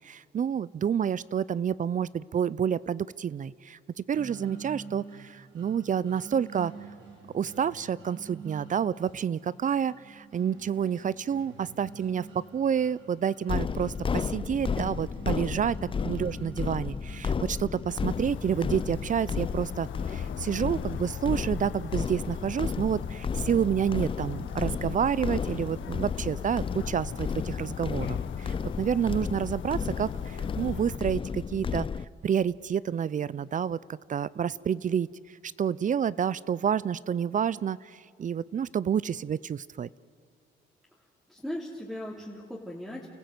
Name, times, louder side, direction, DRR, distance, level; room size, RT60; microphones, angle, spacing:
voice 1, 0.0-6.7 7.3-15.8 16.0-31.9 32.2-33.8 34.1-35.1 35.4-39.9, right 8 dB, 40° right, 21 dB, 0.5 m, -29 dB
sound 1, 4.1-20.1, right 5 dB, 80° right, 6.0 m, -48 dB
sound 2, 13.5-32.0, left 6 dB, 25° left, 0.5 m, -33 dB
voice 2, 15.5-16.0 41.3-43.2, left 1 dB, ahead, -5 dB, 3.0 m, -39 dB
sound 3, 17.9-31.0, left 10 dB, 70° left, 1.0 m, -41 dB
30.0 x 15.0 x 8.0 m, 2.3 s
cardioid pair, 90°, 20 cm